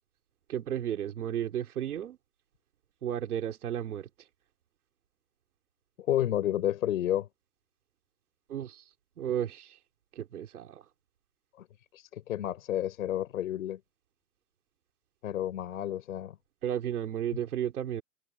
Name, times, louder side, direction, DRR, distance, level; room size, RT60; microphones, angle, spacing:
voice 1, 0.5-2.2 3.0-4.1 8.5-8.9 9.2-9.8 10.2-10.8 16.6-18.0, right 10 dB, 80° right, 3.8 m, -33 dB
voice 2, 6.1-7.3 11.6-11.7 11.9-13.8 15.2-16.4, left 12 dB, 65° left, 4.3 m, -30 dB
hypercardioid pair, 170°, 44 cm